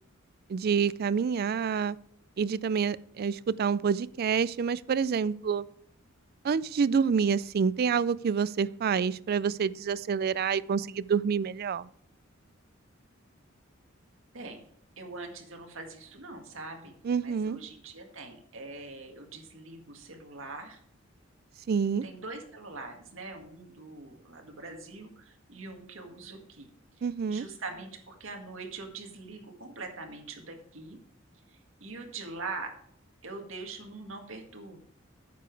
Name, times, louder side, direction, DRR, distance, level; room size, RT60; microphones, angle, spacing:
voice 1, 0.5-2.0 2.4-5.6 6.4-11.9 17.0-17.6 21.7-22.0 27.0-27.5, right 6 dB, 50° right, 19 dB, 0.3 m, -27 dB
voice 2, 15.0-16.9 17.2-20.8 22.0-26.7 27.0-31.0 31.8-32.7 33.2-34.8, right 3 dB, 75° right, 3 dB, 1.9 m, -43 dB
9.3 x 7.0 x 4.6 m, 0.65 s
head